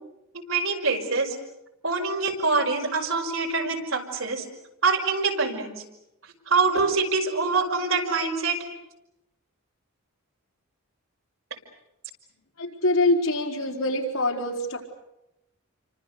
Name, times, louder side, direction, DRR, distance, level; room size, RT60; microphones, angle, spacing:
voice 1, 0.3-1.4 1.8-4.4 4.8-5.8 6.5-8.6, right 4 dB, 75° right, 2 dB, 5.5 m, -25 dB
voice 2, 12.6-14.9, left 2 dB, 85° left, 0 dB, 4.9 m, -25 dB
29.5 x 25.0 x 6.8 m, 0.88 s
head